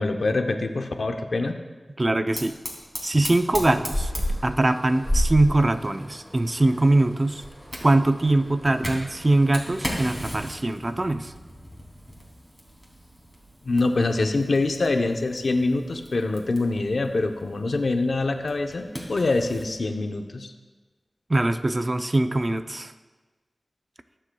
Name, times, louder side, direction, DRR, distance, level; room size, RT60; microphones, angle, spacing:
voice 1, 0.0-1.6 13.6-20.5, left 3 dB, 80° left, 5 dB, 0.8 m, -25 dB
voice 2, 2.0-2.6 3.0-4.1 4.4-7.4 7.8-11.3 21.3-22.9, right 2 dB, 40° right, 9 dB, 0.6 m, -22 dB
Fire, 2.4-19.7, equal, 5° right, 2.9 m, -34 dB
20.5 x 7.6 x 2.3 m, 1.3 s
wide cardioid pair, 50°, 0 cm